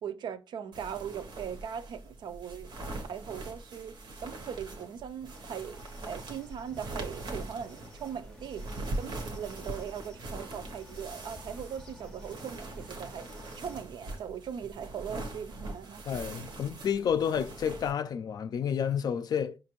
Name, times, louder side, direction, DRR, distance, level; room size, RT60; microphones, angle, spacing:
voice 1, 0.0-2.7 3.0-5.8 6.1-8.7 9.0-13.3 13.5-16.0, right 8 dB, 70° right, 0.4 m, -40 dB
sound 1, 0.7-17.9, right 2 dB, 90° right, 0.9 m, -42 dB
sound 2, 5.3-13.8, left 1 dB, 10° left, 0.6 m, -51 dB
voice 2, 16.0-19.6, left 8 dB, 55° left, 0.4 m, -30 dB
5.2 x 2.5 x 2.9 m
wide cardioid pair, 145°, 8 cm